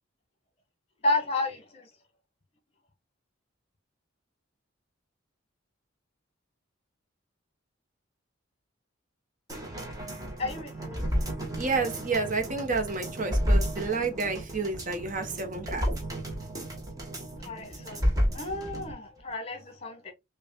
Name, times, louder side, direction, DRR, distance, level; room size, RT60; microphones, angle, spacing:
voice 1, 1.0-1.9 10.4-11.0 13.8-13.9 17.4-18.0 18.3-20.1, left 2 dB, 30° left, 1.2 m, -32 dB
sound 1, 9.5-18.9 19.3-19.4, equal, 20° right, 1.2 m, -31 dB
voice 2, 11.6-15.8, right 4 dB, 40° right, 1.0 m, -30 dB
6.1 x 2.4 x 2.2 m
head